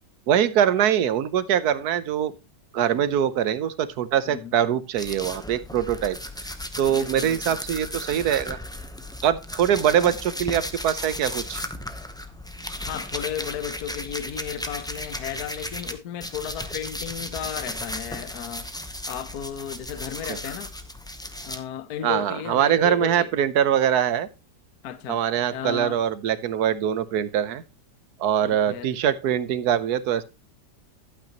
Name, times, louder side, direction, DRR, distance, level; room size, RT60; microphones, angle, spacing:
voice 1, 0.3-2.3 2.7-6.2 6.8-8.6 9.2-11.7 20.3-20.4 22.0-24.3 25.1-27.6 28.2-30.2, right 9 dB, 70° right, 1.3 m, -23 dB
sound 1, 5.0-15.9 16.2-21.6, left 1 dB, 5° left, 0.3 m, -35 dB
voice 2, 6.9-7.6 9.9-10.2 12.8-18.7 19.1-20.7 21.4-23.3 24.8-25.2 25.5-26.0 28.4-28.9, left 10 dB, 65° left, 1.2 m, -34 dB
12.0 x 8.9 x 2.9 m
omnidirectional pair, 1.8 m